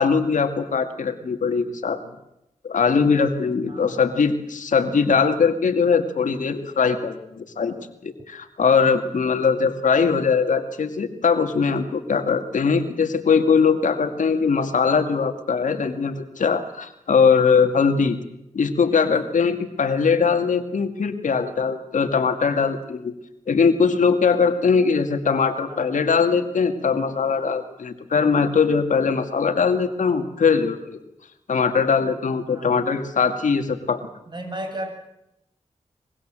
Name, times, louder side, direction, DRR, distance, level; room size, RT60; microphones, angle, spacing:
voice 1, 0.0-2.0 2.6-7.7 8.0-18.2 18.5-23.1 23.5-31.0 31.5-34.0, left 5 dB, 85° left, 7 dB, 2.2 m, -21 dB
voice 2, 3.6-4.2 18.9-19.3 25.7-26.0 32.5-32.8 34.3-34.9, right 1 dB, 35° right, 4 dB, 7.4 m, -35 dB
24.5 x 22.5 x 7.6 m, 0.85 s
cardioid pair, 60°, 13 cm